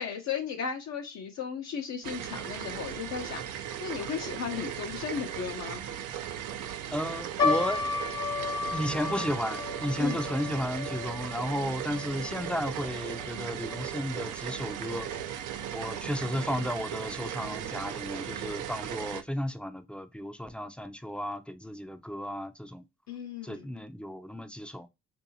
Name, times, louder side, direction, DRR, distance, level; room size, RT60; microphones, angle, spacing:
voice 1, 0.0-5.8 10.0-10.2 23.1-23.7, left 7 dB, 60° left, 0.7 m, -35 dB
sound 1, 2.0-19.2, right 10 dB, 85° right, 0.6 m, -37 dB
voice 2, 6.9-7.8 8.7-15.1 15.7-22.8 23.4-24.9, equal, 5° left, 0.4 m, -33 dB
sound 2, 7.4-13.9 14.1-14.2 15.0-15.3 15.9-16.0 16.3-16.5, left 4 dB, 45° left, 1.0 m, -34 dB
3.6 x 2.7 x 2.7 m
cardioid pair, 90°, 30 cm